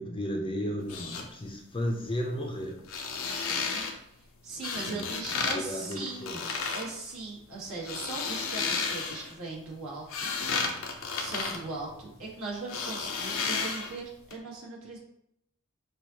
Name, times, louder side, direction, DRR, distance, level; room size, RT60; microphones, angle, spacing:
voice 1, 0.0-2.8 4.9-6.6, equal, 25° left, 1 dB, 0.6 m, -34 dB
sound 1, 0.8-1.2 2.8-3.9 4.6-5.6 5.9-6.9 7.7-9.3 9.8-12.3 12.7-14.0 14.3-14.4, left 5 dB, 65° left, 0.6 m, -32 dB
voice 2, 3.5-6.3 6.7-10.3 11.2-15.0, right 3 dB, 70° right, -4 dB, 1.5 m, -39 dB
6.3 x 2.4 x 2.8 m, 0.75 s
head